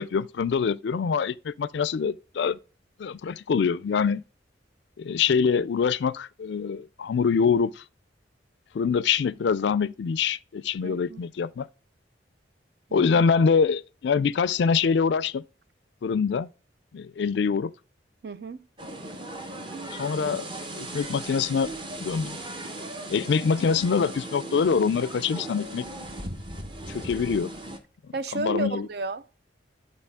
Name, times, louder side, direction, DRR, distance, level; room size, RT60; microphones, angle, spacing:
voice 1, 0.0-2.6 3.0-4.2 5.0-7.8 8.7-11.7 12.9-15.4 16.0-16.5 16.9-17.7 19.9-21.7 22.0-22.4 23.1-25.8 26.9-27.5 28.3-28.9, left 6 dB, 65° left, 0.3 m, -25 dB
voice 2, 10.8-11.2 12.9-13.2 18.2-18.7 28.1-29.5, right 2 dB, 55° right, 0.5 m, -33 dB
sound 1, 18.8-27.8, right 1 dB, 25° right, 0.9 m, -38 dB
11.5 x 4.3 x 3.5 m
head